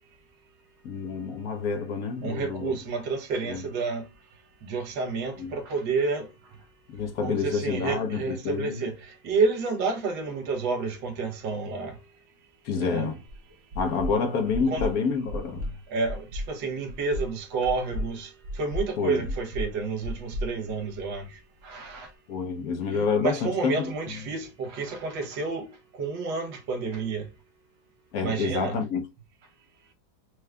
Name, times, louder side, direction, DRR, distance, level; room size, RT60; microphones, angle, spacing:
voice 1, 0.8-2.8 3.4-3.7 5.4-5.6 6.9-8.9 12.6-13.2 13.7-15.7 19.0-19.3 22.3-24.3 28.1-29.1, left 5 dB, 60° left, 1.2 m, -28 dB
voice 2, 2.2-4.1 4.6-6.3 7.2-12.0 12.8-13.1 14.7-14.9 15.9-22.1 22.9-25.7 26.0-27.3 28.2-28.8, right 4 dB, 75° right, 1.7 m, -30 dB
sound 1, 13.3-13.4 13.7-14.1 14.5-14.9 15.3-15.7 16.0-16.5 16.9-17.3 17.6-18.1 18.4-18.9 19.2-19.7 20.0-21.2, left 1 dB, 60° right, 1.0 m, -33 dB
4.6 x 2.4 x 3.2 m
omnidirectional pair, 2.0 m